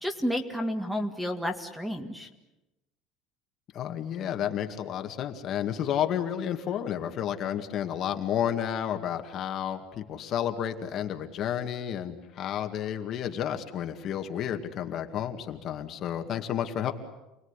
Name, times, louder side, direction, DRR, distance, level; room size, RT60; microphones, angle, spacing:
voice 1, 0.0-2.3, equal, 5° right, 7 dB, 2.0 m, -31 dB
voice 2, 3.7-16.9, left 9 dB, 40° left, 5 dB, 2.1 m, -31 dB
29.0 x 20.5 x 9.9 m, 0.97 s
cardioid pair, 160°, 0 cm